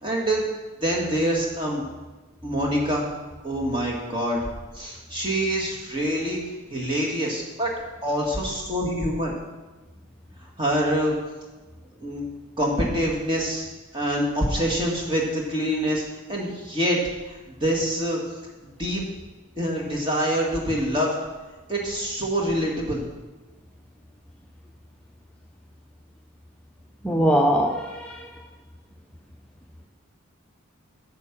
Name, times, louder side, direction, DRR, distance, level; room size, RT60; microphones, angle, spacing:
voice 1, 0.0-0.4 0.8-1.9 2.4-3.1 3.4-4.4 4.7-6.4 6.7-7.7 8.0-9.3 10.6-11.1 12.0-12.3 12.6-13.7 13.9-16.0 16.3-17.0 17.6-18.2 18.8-19.1 19.6-21.2 21.7-23.0, equal, 25° right, -1 dB, 2.0 m, -25 dB
voice 2, 27.0-28.2, equal, 5° left, 0 dB, 0.6 m, -21 dB
8.9 x 7.5 x 6.0 m, 1.2 s
head